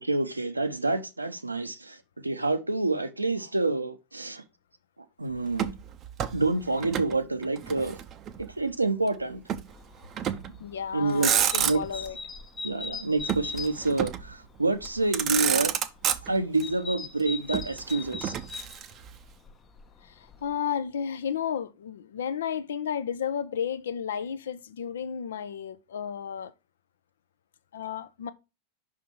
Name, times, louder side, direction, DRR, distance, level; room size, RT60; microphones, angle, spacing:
voice 1, 0.0-2.0 2.2-4.4 5.2-5.7 6.3-8.0 8.4-9.4 10.9-11.8 12.6-15.7 16.2-18.3, right 2 dB, 85° right, 0.7 m, -28 dB
Motor vehicle (road), 5.5-7.2 7.4-8.5 9.5-9.7 10.2-10.6 11.0-12.1 13.3-14.3 14.8-14.9 15.1-16.6 17.5-19.2, right 9 dB, 30° right, 0.5 m, -29 dB
sound 1, 9.7-20.6, left 4 dB, 20° left, 0.7 m, -42 dB
voice 2, 10.6-12.2 20.0-26.5 27.7-28.3, left 8 dB, 65° left, 0.5 m, -33 dB
5.7 x 3.7 x 5.9 m
figure-of-eight pair, 90°, 0 cm